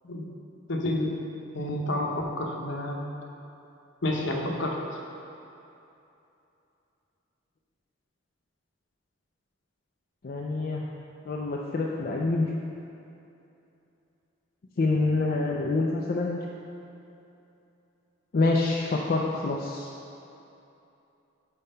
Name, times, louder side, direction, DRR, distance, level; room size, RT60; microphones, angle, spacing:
voice 1, 0.7-1.2 1.5-3.0 4.0-4.8, left 1 dB, 65° left, 0 dB, 0.8 m, -29 dB
voice 2, 10.2-10.8 11.3-12.5 14.8-16.4 18.3-19.9, left 3 dB, 45° left, -2 dB, 0.4 m, -26 dB
5.5 x 4.5 x 5.4 m, 2.8 s
head